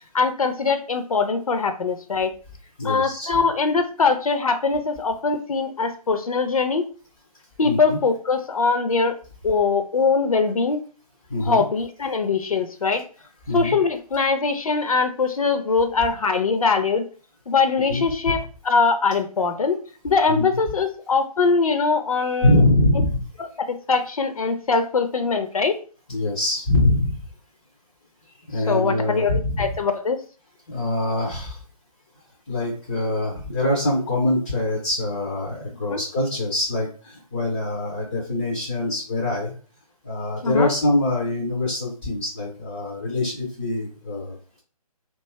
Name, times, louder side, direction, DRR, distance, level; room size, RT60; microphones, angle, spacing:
voice 1, 0.1-2.3 2.8-6.9 7.6-9.1 9.4-10.8 11.4-13.0 13.5-17.1 17.5-18.4 18.6-19.8 20.0-22.6 23.6-25.8 28.7-30.2 35.9-36.0 40.4-40.7, left 4 dB, 65° left, 8 dB, 0.5 m, -22 dB
voice 2, 2.8-3.4 7.6-8.0 11.3-11.6 12.0-12.1 13.5-13.7 17.8-18.4 20.3-20.5 22.4-23.2 26.1-27.2 28.5-29.8 30.7-31.6 32.5-39.5 40.0-44.6, left 1 dB, 15° left, -2 dB, 0.3 m, -24 dB
2.6 x 2.3 x 4.1 m, 0.39 s
figure-of-eight pair, 145°, 19 cm